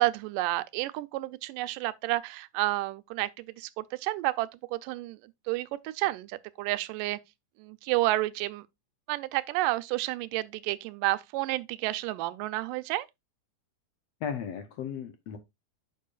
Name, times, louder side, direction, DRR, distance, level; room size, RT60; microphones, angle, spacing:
voice 1, 0.0-5.2 5.5-7.2 7.6-8.7 9.1-13.1, right 18 dB, 90° right, 2.2 m, -30 dB
voice 2, 14.2-15.4, left 7 dB, 70° left, 1.6 m, -35 dB
9.2 x 6.8 x 2.4 m
omnidirectional pair, 3.7 m